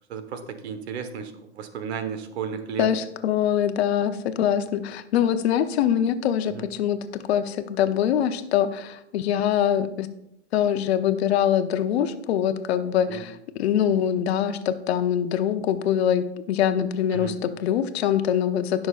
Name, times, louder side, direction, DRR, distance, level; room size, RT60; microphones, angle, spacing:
voice 1, 0.1-2.9 6.5-6.7 13.1-13.2 17.1-17.4, right 7 dB, 70° right, 8 dB, 1.3 m, -33 dB
voice 2, 2.8-10.1 10.5-18.9, left 9 dB, 65° left, 10 dB, 0.9 m, -24 dB
15.5 x 6.2 x 2.5 m, 0.82 s
hypercardioid pair, 115°, 34 cm